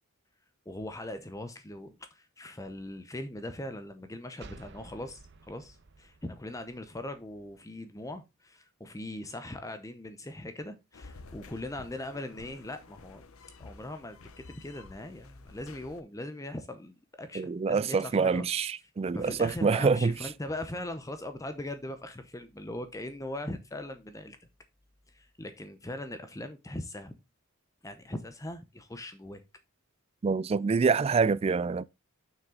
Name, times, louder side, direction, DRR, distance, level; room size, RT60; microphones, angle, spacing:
voice 1, 0.7-13.2 13.6-18.5 19.1-24.4 25.1-27.1 27.8-29.4, left 1 dB, 15° left, 0.7 m, -40 dB
sound 1, 4.4-7.9, right 3 dB, 55° right, 0.9 m, -53 dB
sound 2, 10.9-16.0, left 3 dB, 80° left, 0.8 m, -51 dB
voice 2, 17.3-20.1 30.2-31.8, right 5 dB, 30° right, 0.3 m, -26 dB
7.3 x 6.3 x 3.8 m
head